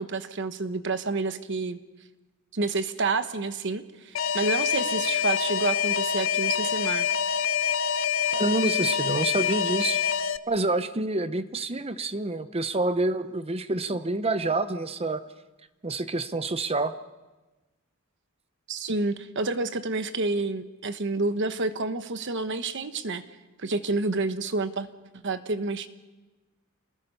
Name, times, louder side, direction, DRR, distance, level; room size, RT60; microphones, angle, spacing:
voice 1, 0.0-1.8 2.5-7.1 18.7-23.2 23.6-24.9 25.2-25.9, right 3 dB, 60° right, 10 dB, 1.1 m, -29 dB
Alarm, 4.1-10.4, left 7 dB, 65° left, 0.6 m, -26 dB
voice 2, 8.3-10.0 10.5-15.2 15.8-16.9, right 2 dB, 30° right, 12 dB, 0.8 m, -27 dB
28.0 x 20.5 x 5.6 m, 1.2 s
head